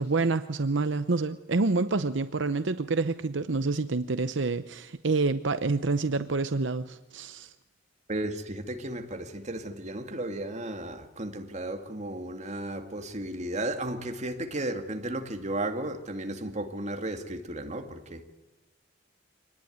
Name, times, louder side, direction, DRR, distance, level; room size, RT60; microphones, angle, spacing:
voice 1, 0.0-7.5, right 3 dB, 70° right, 0.8 m, -27 dB
voice 2, 8.1-18.2, right 1 dB, 40° right, 2.3 m, -34 dB
26.0 x 19.5 x 9.5 m
head